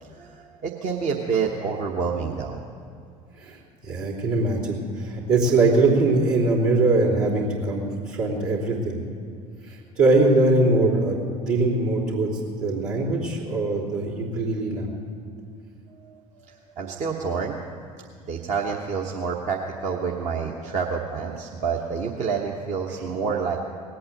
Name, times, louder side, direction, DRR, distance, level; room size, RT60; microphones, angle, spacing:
voice 1, 0.2-2.6 16.0-17.6 18.3-23.6, right 5 dB, 40° right, 0 dB, 1.1 m, -28 dB
voice 2, 3.8-9.0 9.7-11.2 11.4-12.3 12.6-14.9, right 2 dB, 65° right, -4 dB, 3.2 m, -22 dB
18.5 x 8.5 x 7.7 m, 2.3 s
figure-of-eight pair, 65°, 19 cm